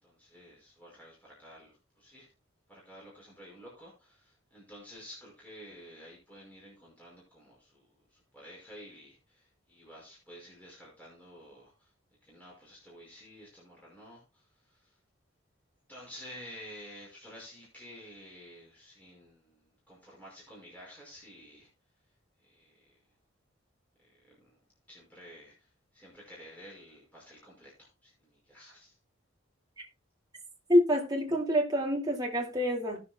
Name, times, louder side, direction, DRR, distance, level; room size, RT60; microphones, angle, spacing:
voice 1, 0.0-2.3 2.7-11.9 12.2-14.9 15.9-21.7 22.4-22.8 24.3-24.6 24.9-29.0, equal, 10° left, 5.6 m, -51 dB
voice 2, 30.7-33.0, equal, 20° right, 2.5 m, -27 dB
19.0 x 7.1 x 2.3 m
head